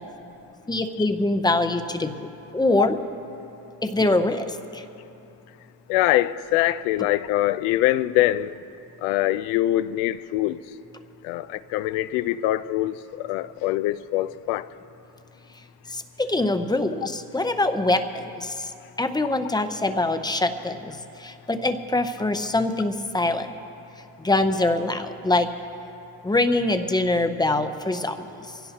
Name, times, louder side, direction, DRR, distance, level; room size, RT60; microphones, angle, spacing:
voice 1, 0.7-2.3 2.5-3.0 3.8-4.8 7.0-7.1 15.9-18.7 19.0-23.5 24.2-25.5 26.2-28.6, left 2 dB, 10° left, 8 dB, 0.6 m, -24 dB
voice 2, 5.9-8.6 9.0-10.6 11.2-14.7, left 15 dB, 85° left, 15 dB, 0.6 m, -23 dB
23.0 x 17.0 x 2.9 m, 2.8 s
cardioid pair, 115°, 48 cm